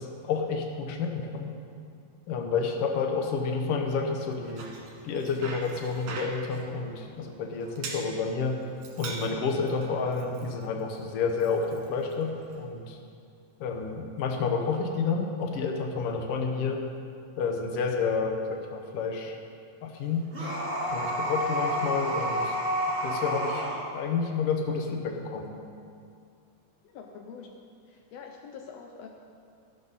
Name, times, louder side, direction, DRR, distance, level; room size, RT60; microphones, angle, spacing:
voice 1, 0.0-1.5 2.3-4.7 5.0-8.6 9.0-13.0 13.6-16.8 17.4-19.4 19.8-20.3 20.9-22.6 23.0-23.7 23.9-25.6, left 5 dB, 65° left, 3 dB, 1.4 m, -30 dB
Bicycle, 4.3-12.6, right 3 dB, 65° right, 2.8 m, -44 dB
sound 1, 20.3-23.8, equal, 15° right, 3.1 m, -29 dB
voice 2, 26.8-27.5 27.9-29.1, left 6 dB, 85° left, 3 dB, 1.4 m, -45 dB
13.5 x 12.0 x 4.1 m, 2.4 s
omnidirectional pair, 3.9 m